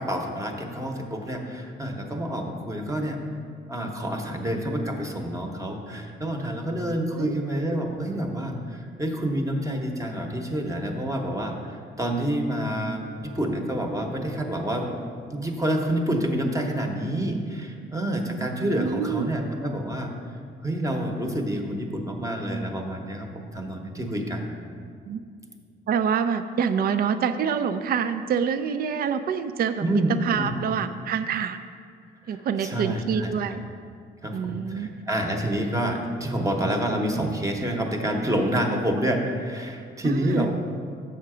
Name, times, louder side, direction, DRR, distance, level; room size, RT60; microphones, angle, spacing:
voice 1, 0.0-3.2 3.7-13.0 13.3-14.9 15.3-20.1 20.6-24.5 29.8-30.1 30.4-30.5 32.3-33.6 34.2-40.5, right 1 dB, 15° right, 2 dB, 0.9 m, -28 dB
voice 2, 7.1-7.8 18.8-19.3 25.1-25.2 25.9-31.6 32.3-33.6 34.3-34.9 40.0-40.5, right 7 dB, 50° right, 10 dB, 0.4 m, -26 dB
7.1 x 5.7 x 4.9 m, 2.2 s
cardioid pair, 90°, 20 cm